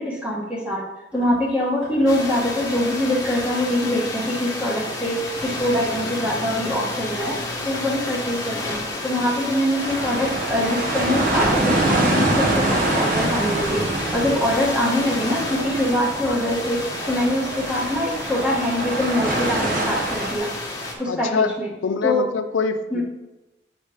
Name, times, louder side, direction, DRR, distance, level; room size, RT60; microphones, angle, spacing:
voice 1, 0.0-13.9 14.1-20.5 21.0-21.7 22.0-22.3 22.9-23.0, left 1 dB, 5° right, -4 dB, 1.7 m, -24 dB
sound 1, 1.1-14.7 15.0-19.3, right 1 dB, 80° right, 2.9 m, -42 dB
sound 2, 2.1-20.9, left 2 dB, 20° left, 1.3 m, -31 dB
sound 3, 9.8-20.3, right 2 dB, 45° right, 1.4 m, -25 dB
voice 2, 21.1-21.5 21.8-23.0, left 5 dB, 85° left, 8 dB, 0.5 m, -24 dB
8.3 x 4.3 x 4.9 m, 1.0 s
head